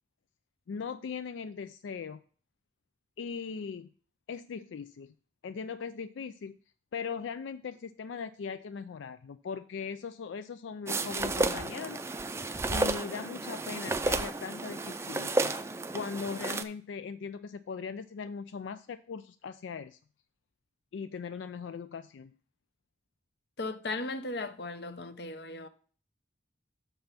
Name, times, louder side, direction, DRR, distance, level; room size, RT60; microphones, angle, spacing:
voice 1, 0.7-2.2 3.2-3.9 4.3-5.1 5.4-6.6 6.9-12.0 12.7-15.5 15.9-20.0 20.9-22.3, left 5 dB, 90° left, 0.4 m, -39 dB
sound 1, 10.9-16.6, right 2 dB, 15° right, 0.4 m, -32 dB
voice 2, 23.6-25.7, left 2 dB, 65° left, 0.7 m, -36 dB
7.0 x 5.4 x 5.7 m
head